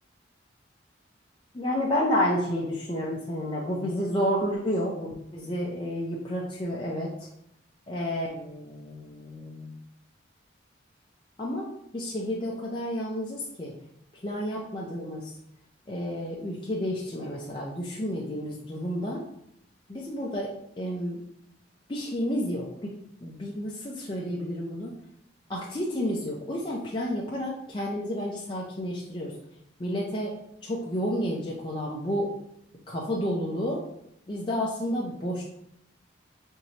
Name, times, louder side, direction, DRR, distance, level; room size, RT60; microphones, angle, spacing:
voice 1, 1.5-7.1 7.9-9.7 11.4-11.7 11.9-13.7 14.2-15.3 15.9-19.2 19.9-21.2 21.9-22.9 23.2-24.9 25.5-29.3 29.8-30.3 30.6-32.3 32.9-33.8 34.3-35.4, equal, 25° left, -4 dB, 0.5 m, -30 dB
4.6 x 2.7 x 2.9 m, 0.76 s
head